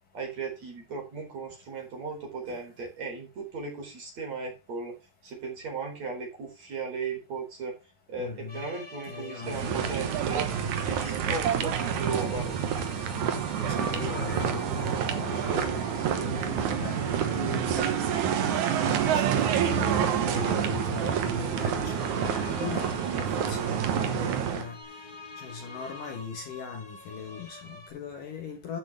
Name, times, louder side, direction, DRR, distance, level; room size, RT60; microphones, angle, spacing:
voice 1, 0.1-5.0 5.2-7.8 8.1-10.4 10.8-12.5, right 4 dB, 40° right, 5.2 m, -36 dB
voice 2, 8.2-8.6 9.1-10.1 11.0-11.4 13.0-13.3 13.7-17.9 18.8-24.8 25.4-28.8, left 6 dB, 60° left, 2.6 m, -39 dB
sound 1, 8.5-27.9, left 2 dB, 15° left, 1.4 m, -47 dB
sound 2, 9.4-24.7, right 8 dB, 65° right, 2.0 m, -28 dB
12.0 x 7.4 x 3.4 m
omnidirectional pair, 5.0 m